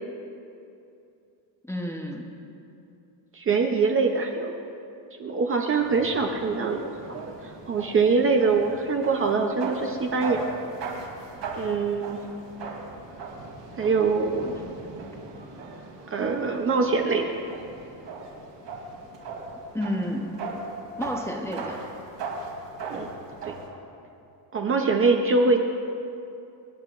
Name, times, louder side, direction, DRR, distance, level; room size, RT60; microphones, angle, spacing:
voice 1, 1.7-2.3 15.0-15.2 19.7-20.3 21.0-21.8, equal, 5° left, 1 dB, 0.7 m, -30 dB
voice 2, 3.3-4.5 5.2-7.2 7.7-10.5 11.6-12.2 13.8-14.6 16.1-17.3 22.9-23.1 23.5-23.6 24.5-25.6, right 4 dB, 30° right, 2 dB, 0.6 m, -23 dB
sound 1, 5.8-23.7, right 3 dB, 65° right, 2.9 m, -38 dB
26.0 x 9.7 x 2.5 m, 2.7 s
cardioid pair, 165°, 45 cm